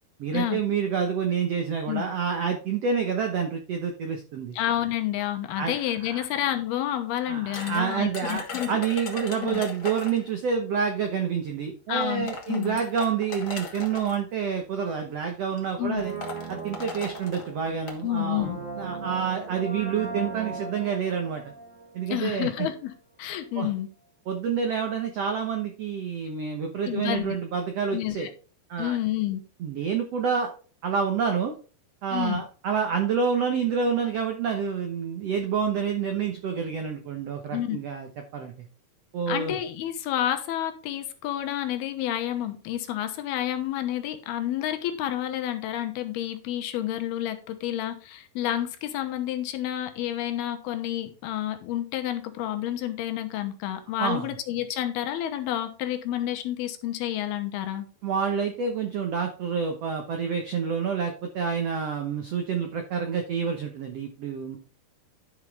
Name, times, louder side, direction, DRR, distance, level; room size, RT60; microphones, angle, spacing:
voice 1, 0.2-4.6 5.6-6.3 7.3-16.1 16.5-21.5 21.9-22.7 23.6-23.7 24.3-28.3 28.7-29.0 29.6-30.5 30.8-31.5 32.0-38.5 39.1-39.6 54.0-54.3 58.0-64.6, right 6 dB, 80° right, 4 dB, 1.4 m, -28 dB
voice 2, 4.5-8.7 9.4-9.6 11.9-12.8 15.8-16.0 18.0-18.6 22.1-22.9 23.2-23.9 26.9-27.4 27.9-28.3 28.8-29.4 32.1-32.4 37.5-37.8 39.3-57.9, left 12 dB, 80° left, 7 dB, 2.9 m, -29 dB
sound 1, 7.5-10.3 11.4-11.5 12.0-14.2 15.1-15.3 15.6-15.7 16.0-18.0, left 5 dB, 45° left, 1.7 m, -38 dB
Brass instrument, 15.8-22.6 22.9-23.0, right 4 dB, 65° right, 0.7 m, -38 dB
11.5 x 5.5 x 3.5 m, 0.37 s
omnidirectional pair, 4.5 m